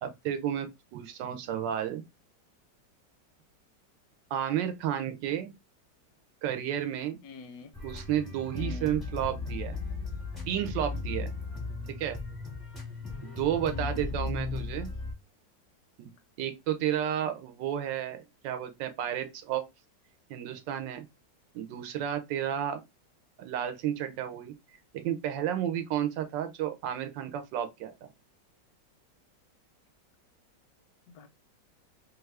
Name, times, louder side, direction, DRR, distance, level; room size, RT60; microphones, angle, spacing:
voice 1, 0.0-2.0 4.3-5.5 6.4-7.2 7.8-9.8 10.5-11.3 12.0-12.2 13.2-14.9 16.0-16.1 16.4-19.6 20.3-21.0 21.5-22.8 23.4-24.5 24.9-28.1, right 10 dB, 85° right, 1.3 m, -32 dB
voice 2, 7.2-7.8 8.6-9.0 13.7-14.2 31.1-31.3, left 3 dB, 70° left, 0.9 m, -45 dB
sound 1, 7.7-15.1, left 3 dB, ahead, 0.5 m, -36 dB
3.0 x 2.4 x 3.1 m
omnidirectional pair, 1.9 m